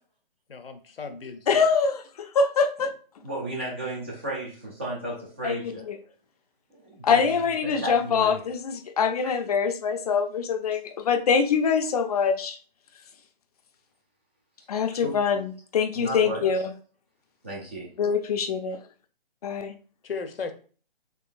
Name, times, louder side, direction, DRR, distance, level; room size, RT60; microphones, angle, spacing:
voice 1, 0.5-1.7 20.0-20.5, left 5 dB, 75° left, 8 dB, 0.7 m, -36 dB
voice 2, 1.5-2.9 5.4-5.9 7.0-12.6 14.7-16.7 18.0-18.8 19.4-19.7, left 6 dB, 40° left, 7 dB, 0.5 m, -24 dB
voice 3, 3.2-5.8 6.7-7.2 7.6-8.4 15.0-15.1 15.9-16.4 17.4-17.9, right 1 dB, 15° right, -4 dB, 0.4 m, -33 dB
3.8 x 3.2 x 2.5 m, 0.40 s
hypercardioid pair, 145°, 29 cm